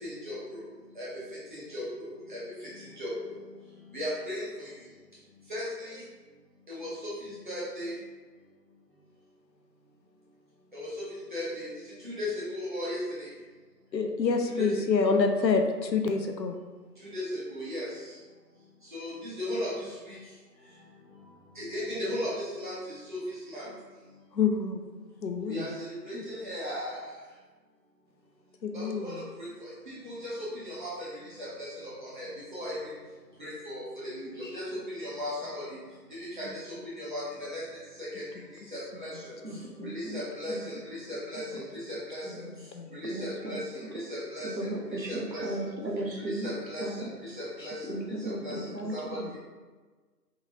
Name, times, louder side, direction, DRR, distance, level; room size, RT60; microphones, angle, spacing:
voice 1, 0.0-0.6 1.0-1.1 1.5-1.8 2.3-2.4 3.0-3.4 3.9-4.7 5.5-6.0 6.7-7.1 7.4-7.9 10.7-11.0 11.3-11.7 12.0-13.3 14.6-14.7 17.1-17.9 18.9-19.7 20.1-20.2 21.6-23.2 23.5-23.7 25.5-27.0 28.7-31.1 31.4-31.7 32.0-32.8 33.4-35.6 36.1-36.6 37.0-37.6 38.0-38.2 38.7-39.1 39.8-40.8 41.1-42.4 42.9-45.6 46.2-47.8 48.2-48.6 48.9-49.2, left 1 dB, 30° right, -8 dB, 1.0 m, -36 dB
voice 2, 13.9-16.6 24.3-24.8 25.2-25.7 26.1-26.3 28.6-29.3 34.4-34.6 36.5-36.6 38.3-38.4 39.5-39.9 42.2-43.0 47.6-47.7 48.0-48.9 49.2-49.4, left 4 dB, 90° left, 5 dB, 0.6 m, -29 dB
voice 3, 39.4-40.2 40.5-40.6 43.1-43.6 44.6-46.5 46.8-47.1 47.9-49.4, right 1 dB, 85° right, -2 dB, 1.1 m, -35 dB
3.7 x 3.0 x 2.7 m, 1.3 s
figure-of-eight pair, 155°, 50 cm